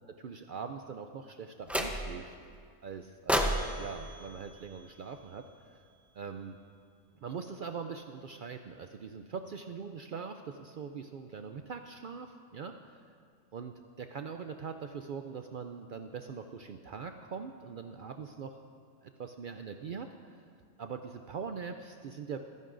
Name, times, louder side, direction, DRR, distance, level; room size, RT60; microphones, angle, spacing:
voice 1, 0.2-2.3 2.8-5.7 6.1-6.6 7.2-13.0 13.5-18.6 19.0-20.4 20.8-22.4, right 6 dB, 75° right, 6 dB, 0.4 m, -42 dB
sound 1, 1.7-2.3 3.3-5.5, equal, ahead, 0.4 m, -33 dB
24.5 x 11.0 x 2.6 m, 2.2 s
omnidirectional pair, 1.4 m